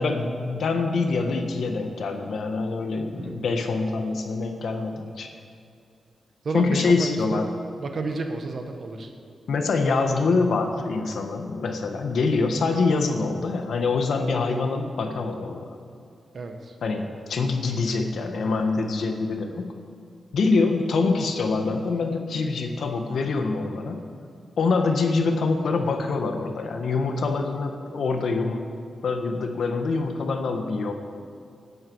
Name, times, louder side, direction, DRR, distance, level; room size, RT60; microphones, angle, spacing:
voice 1, 0.0-5.3 6.5-7.5 9.5-15.7 16.8-19.7 20.3-24.0 24.6-28.6 29.0-30.9, left 4 dB, 75° left, 5 dB, 1.4 m, -25 dB
voice 2, 3.1-3.5 6.4-7.4 7.8-9.1 9.8-9.9 14.4-14.5 16.3-16.7, right 3 dB, 55° right, 5 dB, 1.5 m, -31 dB
18.0 x 11.0 x 4.8 m, 2.5 s
wide cardioid pair, 105°, 0 cm